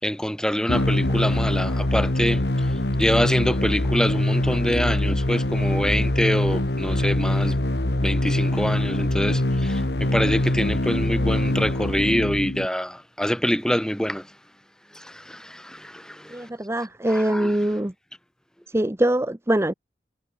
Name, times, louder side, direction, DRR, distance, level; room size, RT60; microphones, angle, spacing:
voice 1, 0.0-2.4 3.0-7.6 8.0-14.3 14.9-16.5 17.1-17.6, equal, 5° left, 3.4 m, -25 dB
sound 1, 0.7-12.7, left 1 dB, 70° left, 1.7 m, -23 dB
voice 2, 16.3-17.9 18.7-19.7, right 1 dB, 15° right, 0.8 m, -23 dB
head